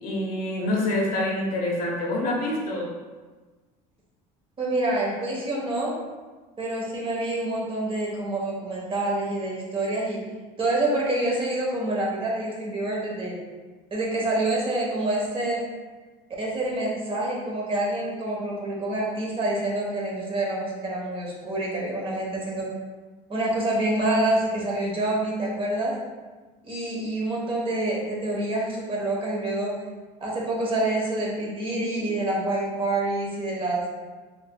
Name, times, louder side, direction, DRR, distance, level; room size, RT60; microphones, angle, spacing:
voice 1, 0.0-2.9, left 1 dB, 55° left, -2 dB, 0.9 m, -26 dB
voice 2, 4.6-5.9 6.6-10.2 10.6-13.4 13.9-15.6 16.4-22.7 23.3-25.9 26.6-29.8 30.2-33.8, right 2 dB, 30° right, -3 dB, 1.0 m, -27 dB
4.2 x 2.7 x 2.2 m, 1.3 s
supercardioid pair, 100°, 18 cm